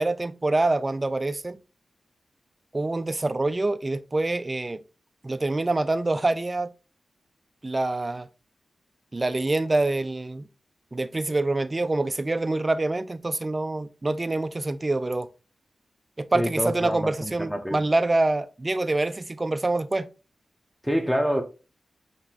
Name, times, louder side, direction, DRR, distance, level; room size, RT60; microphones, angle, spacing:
voice 1, 0.0-1.6 2.7-4.8 5.2-6.7 7.6-8.3 9.1-10.5 10.9-15.3 16.2-20.1, right 2 dB, 35° right, 0.4 m, -26 dB
voice 2, 16.3-17.8 20.8-21.4, equal, ahead, 1.0 m, -26 dB
5.7 x 3.0 x 2.9 m
cardioid pair, 45°, 0 cm